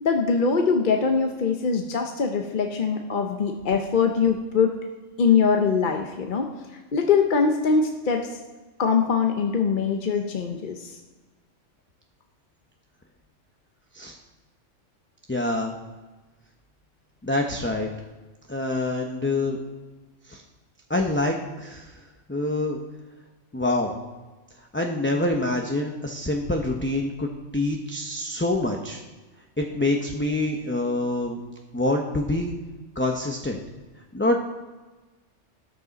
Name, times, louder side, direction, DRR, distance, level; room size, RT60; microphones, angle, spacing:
voice 1, 0.0-4.7 5.2-6.5 6.9-8.2 8.8-10.9, left 5 dB, 45° left, 3 dB, 0.9 m, -22 dB
voice 2, 15.3-15.7 17.2-17.9 18.5-19.6 20.3-20.4 20.9-22.0 22.3-22.8 23.5-23.9 24.7-29.0 29.6-31.4 31.7-32.5 33.0-33.6 34.1-34.5, left 2 dB, 10° left, 1 dB, 0.7 m, -26 dB
13.0 x 9.1 x 4.1 m, 1.2 s
omnidirectional pair, 1.3 m